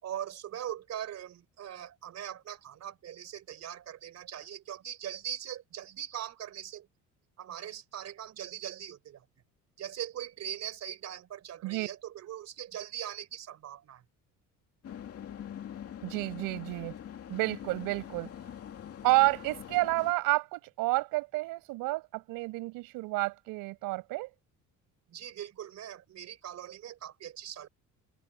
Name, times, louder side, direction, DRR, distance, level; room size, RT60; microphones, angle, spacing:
voice 1, 0.0-6.9 7.4-9.2 9.8-14.0 25.1-27.7, right 10 dB, 50° right, 4.5 m, -41 dB
sound 1, 14.8-20.1, left 9 dB, 45° left, 2.5 m, -44 dB
voice 2, 16.0-17.0 17.3-18.3 19.0-24.3, right 21 dB, 90° right, 5.8 m, -30 dB
cardioid pair, 120°, 33 cm